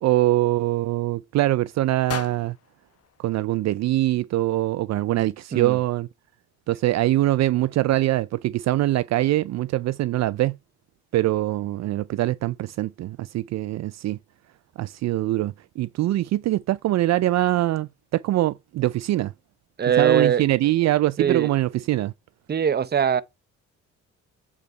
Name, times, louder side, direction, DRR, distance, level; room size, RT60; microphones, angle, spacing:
voice 1, 0.0-2.6 3.2-6.1 6.7-10.6 11.1-14.2 14.8-19.3 20.0-22.1, right 15 dB, 60° right, 0.4 m, -23 dB
sound 1, 2.1-4.2, left 10 dB, 55° left, 0.9 m, -40 dB
voice 2, 19.8-20.4 21.2-21.5 22.5-23.2, right 8 dB, 35° right, 0.7 m, -21 dB
8.5 x 5.3 x 4.4 m
cardioid pair, 90°, 30 cm